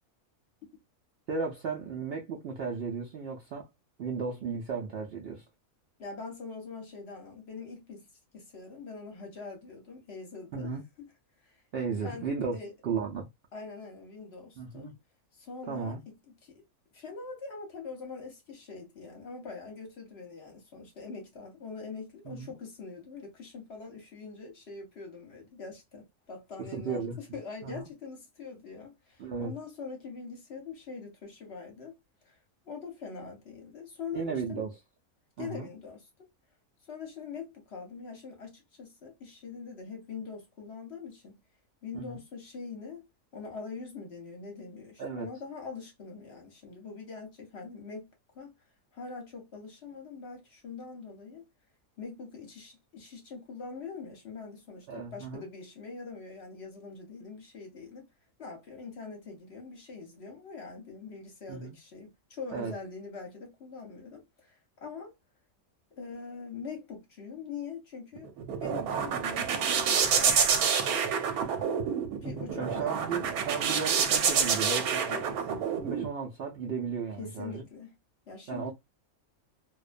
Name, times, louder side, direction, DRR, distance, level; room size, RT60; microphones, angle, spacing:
voice 1, 1.3-3.7 4.0-5.4 10.5-10.8 11.7-12.6 12.8-13.3 14.6-14.9 15.7-16.0 22.2-22.5 26.7-27.2 27.6-27.9 29.2-29.5 34.1-34.7 35.4-35.7 41.9-42.2 45.0-45.3 54.9-55.5 61.5-61.8 62.5-62.7 72.5-75.0 75.5-77.6 78.5-78.7, right 5 dB, 65° right, 0.6 m, -35 dB
voice 2, 6.0-8.1 8.3-11.1 11.4-11.6 12.0-12.7 13.5-14.9 15.4-16.0 16.4-16.6 16.9-31.9 32.2-32.4 32.6-34.6 35.4-36.1 36.9-41.4 41.8-43.0 43.3-48.1 48.3-48.5 48.9-51.4 52.0-58.1 58.4-65.1 65.9-68.3 68.6-71.1 72.2-73.3 75.1-75.4 77.2-77.9 78.3-78.7, left 5 dB, 55° left, 0.9 m, -43 dB
sound 1, 68.2-76.1, right 7 dB, 85° right, 1.1 m, -28 dB
2.4 x 2.1 x 2.4 m
omnidirectional pair, 1.5 m